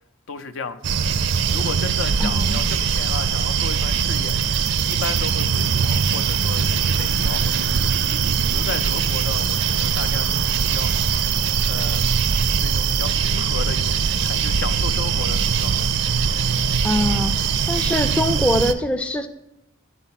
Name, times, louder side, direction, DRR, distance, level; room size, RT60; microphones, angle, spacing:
voice 1, 0.3-1.1 1.5-4.4 4.8-8.1 8.5-10.9 11.6-12.1 12.6-15.9, left 5 dB, 70° left, 0.5 m, -34 dB
sound 1, 0.8-18.7, right 6 dB, 65° right, 0.4 m, -21 dB
voice 2, 2.2-2.6 16.8-19.3, left 1 dB, 5° left, 0.4 m, -23 dB
9.9 x 4.1 x 5.8 m
head